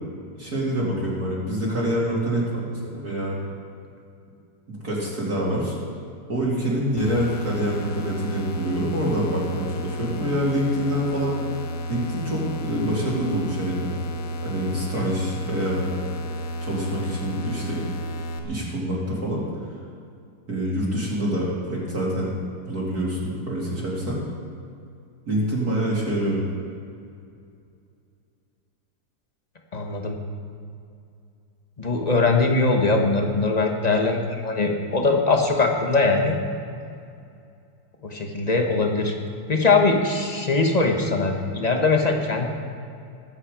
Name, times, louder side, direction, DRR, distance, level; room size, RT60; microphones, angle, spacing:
voice 1, 0.4-3.4 4.7-5.8 6.3-11.4 11.9-13.9 14.4-15.9 16.6-17.9 18.4-19.4 20.5-22.3 22.7-24.2 25.3-26.4, right 1 dB, 45° right, -6 dB, 3.0 m, -26 dB
sound 1, 7.0-18.4, equal, 70° left, 1.9 m, -32 dB
voice 2, 29.7-30.2 31.8-36.4 38.0-39.1 39.5-42.5, left 3 dB, 25° left, 2 dB, 0.9 m, -21 dB
21.0 x 8.8 x 5.0 m, 2.5 s
omnidirectional pair, 2.4 m